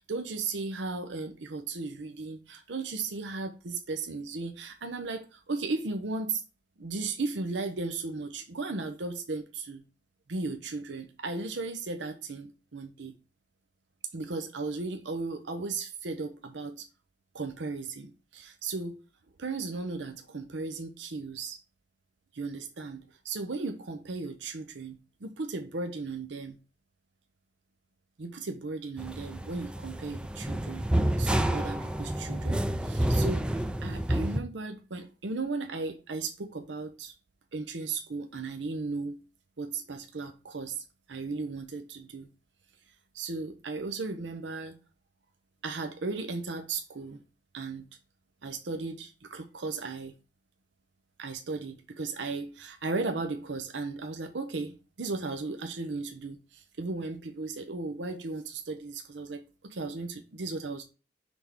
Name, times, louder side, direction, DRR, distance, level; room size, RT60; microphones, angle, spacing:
voice 1, 0.0-6.4 6.8-9.8 10.3-13.1 14.1-16.9 17.3-19.0 19.4-21.6 22.3-26.6 28.2-30.9 31.2-37.1 37.5-39.2 39.6-42.3 43.1-44.8 45.6-47.2 47.5-47.9 48.4-50.1 51.2-60.8, right 3 dB, 75° right, 0.7 m, -36 dB
sound 1, 29.0-34.4, right 1 dB, 5° right, 0.4 m, -29 dB
6.0 x 3.5 x 4.4 m
head